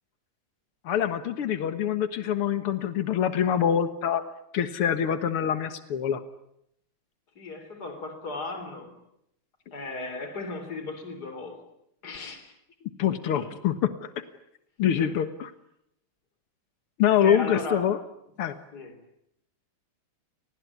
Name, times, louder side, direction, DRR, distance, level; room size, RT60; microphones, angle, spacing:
voice 1, 0.9-4.2 4.5-6.2 13.0-14.1 14.8-15.5 17.0-18.0 18.4-18.6, left 9 dB, 85° left, 11 dB, 2.3 m, -25 dB
voice 2, 7.4-8.9 9.7-11.6 12.0-12.5 13.3-13.5 15.0-15.1 17.1-17.9 18.7-18.9, left 3 dB, 45° left, 8 dB, 4.4 m, -36 dB
29.5 x 20.0 x 9.7 m, 0.77 s
omnidirectional pair, 2.4 m